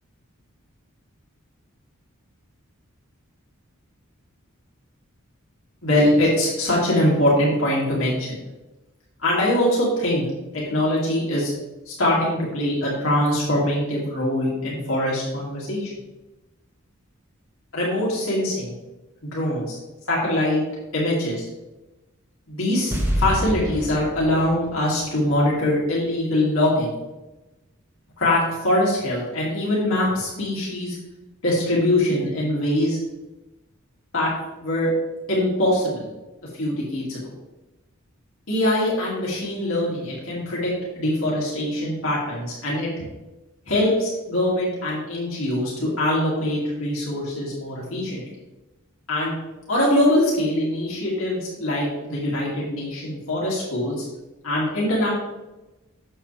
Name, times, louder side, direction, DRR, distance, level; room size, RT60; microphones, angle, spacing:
voice 1, 5.8-8.3 9.2-10.2 10.5-11.5 11.9-15.9 17.7-18.7 19.2-19.8 20.1-20.6 20.9-21.4 22.5-27.0 28.2-31.0 31.4-33.0 34.1-34.3 34.6-34.9 35.3-36.1 36.4-37.2 38.5-42.9 43.7-48.2 49.1-49.4 49.7-54.0 54.4-55.1, left 1 dB, 70° left, -6 dB, 2.6 m, -23 dB
Boom + Reverb, 22.9-26.1 26.4-26.5, right 1 dB, 10° right, 1.4 m, -28 dB
8.9 x 7.1 x 3.4 m, 1.1 s
head